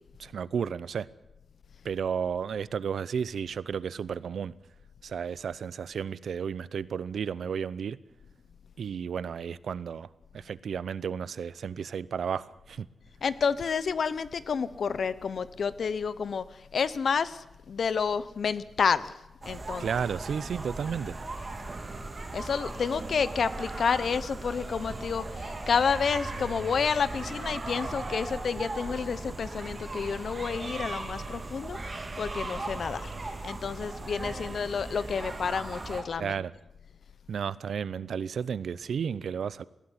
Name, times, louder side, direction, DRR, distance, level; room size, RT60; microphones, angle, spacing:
voice 1, 0.2-1.1 1.8-4.5 5.0-8.0 8.8-12.9 19.8-21.2 36.2-36.5 37.3-39.6, right 7 dB, 90° right, 18 dB, 0.7 m, -33 dB
voice 2, 13.2-19.1 19.5-19.9 22.3-36.3, left 6 dB, 60° left, 16 dB, 0.9 m, -30 dB
sound 1, 19.4-36.0, right 2 dB, 30° right, 3.0 m, -38 dB
20.5 x 16.0 x 10.0 m, 0.93 s
wide cardioid pair, 170°, 0 cm